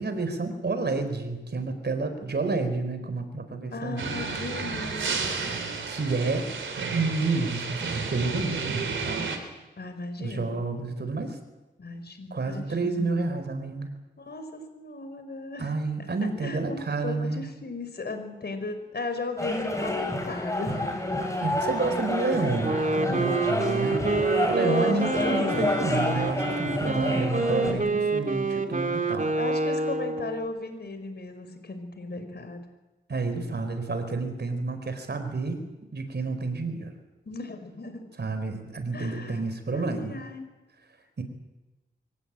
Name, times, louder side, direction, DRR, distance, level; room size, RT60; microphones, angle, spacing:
voice 1, 0.0-4.2 5.9-6.5 6.9-9.4 10.2-11.4 12.3-13.9 15.6-17.4 21.4-24.0 24.5-29.3 33.1-35.6 35.9-36.9 38.2-40.2 41.2-41.3, right 3 dB, 60° right, 8 dB, 4.7 m, -29 dB
voice 2, 3.7-5.2 9.8-10.5 11.8-13.3 14.2-15.7 16.0-16.1 16.4-21.1 22.7-23.2 23.5-24.3 24.6-26.2 27.1-27.9 29.4-32.6 37.2-38.1 38.9-39.4 39.7-40.5, left 3 dB, 60° left, 8 dB, 4.8 m, -36 dB
sound 1, 4.0-9.4, right 4 dB, 90° right, 3.5 m, -32 dB
sound 2, 19.4-27.7, left 1 dB, 15° left, 6.8 m, -29 dB
Wind instrument woodwind instrument, 22.6-30.5, right 3 dB, 40° right, 2.7 m, -27 dB
24.0 x 17.5 x 9.0 m, 1.1 s
cardioid pair, 60°, 19 cm